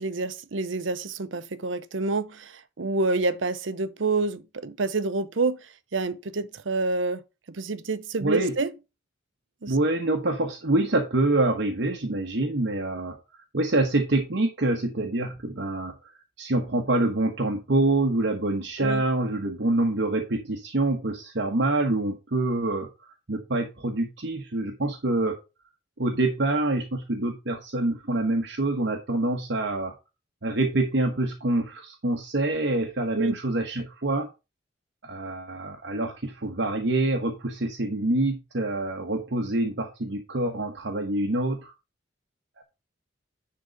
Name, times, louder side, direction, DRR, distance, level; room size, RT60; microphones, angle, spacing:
voice 1, 0.0-7.2 7.5-8.7 9.6-9.8 18.8-19.0 33.1-33.3, right 3 dB, 85° right, 0.8 m, -28 dB
voice 2, 8.2-8.5 9.7-16.1 16.4-25.4 26.0-29.9 30.4-34.3 35.0-41.7 42.6-42.7, right 2 dB, 65° right, 1.2 m, -26 dB
10.5 x 3.9 x 5.2 m
head